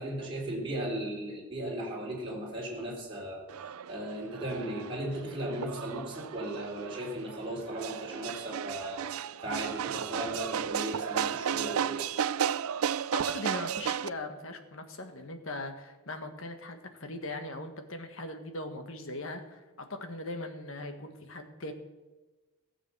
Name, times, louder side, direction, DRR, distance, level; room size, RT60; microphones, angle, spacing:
voice 1, 0.0-3.5 3.9-12.1, right 1 dB, 25° right, -3 dB, 3.5 m, -36 dB
sound 1, 3.5-14.1, right 8 dB, 80° right, 0.4 m, -34 dB
voice 2, 13.1-19.6 19.9-21.7, left 2 dB, 65° left, 6 dB, 1.6 m, -39 dB
15.5 x 7.3 x 6.8 m, 1.2 s
head